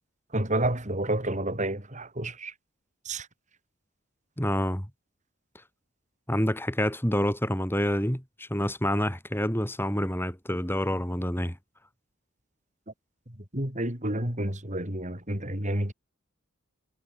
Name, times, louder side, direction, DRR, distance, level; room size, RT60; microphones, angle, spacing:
voice 1, 0.3-2.5 3.0-3.3 13.5-15.9, right 1 dB, 35° right, 6.5 m, -29 dB
voice 2, 4.4-4.9 6.3-11.6, equal, 10° left, 5.9 m, -27 dB
head